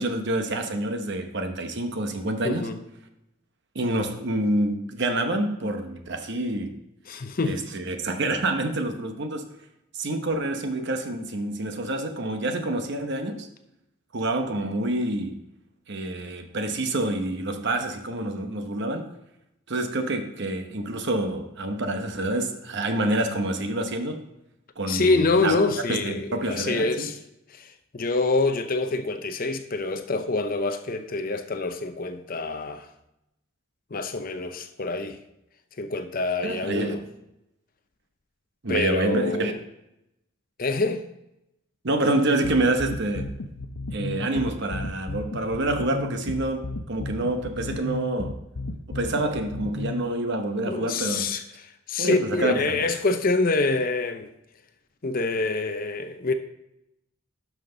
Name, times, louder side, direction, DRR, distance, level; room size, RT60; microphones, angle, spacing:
voice 1, 0.0-2.7 3.7-6.8 7.4-9.5 10.0-13.5 14.1-15.4 15.9-19.1 19.7-24.2 24.8-25.6 25.9-27.1 36.4-37.0 38.6-39.5 41.8-43.3 43.9-48.4 48.9-51.3 52.0-52.9, right 2 dB, 50° right, 0.9 m, -27 dB
voice 2, 2.4-2.8 7.1-7.6 24.9-27.2 27.5-32.9 33.9-35.2 35.8-37.0 38.7-39.6 40.6-41.0 50.7-54.3 55.0-56.3, left 3 dB, 40° left, 0.6 m, -26 dB
sound 1, 42.4-50.0, left 2 dB, 80° left, 0.7 m, -33 dB
11.5 x 5.8 x 3.9 m
head